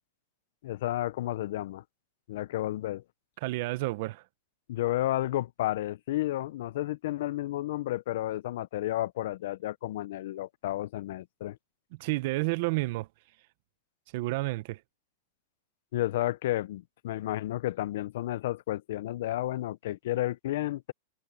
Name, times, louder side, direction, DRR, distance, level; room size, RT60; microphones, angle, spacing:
voice 1, 0.6-1.8 2.3-3.0 4.7-11.6 15.9-20.9, left 15 dB, 65° left, 0.6 m, -32 dB
voice 2, 3.4-4.2 12.0-13.1 14.1-14.8, right 21 dB, 55° right, 0.8 m, -30 dB
supercardioid pair, 155°, 0 cm